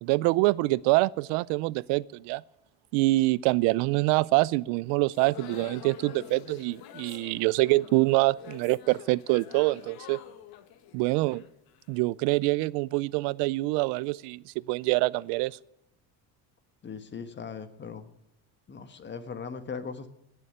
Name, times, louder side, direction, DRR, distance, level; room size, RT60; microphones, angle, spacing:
voice 1, 0.0-2.4 2.9-10.2 10.9-11.4 11.9-15.6, right 21 dB, 80° right, 0.6 m, -25 dB
sound 1, 5.1-12.1, left 10 dB, 65° left, 1.6 m, -47 dB
voice 2, 16.8-18.1 18.7-20.1, left 5 dB, 25° left, 1.4 m, -39 dB
18.0 x 7.0 x 8.8 m
cardioid pair, 135°, 40 cm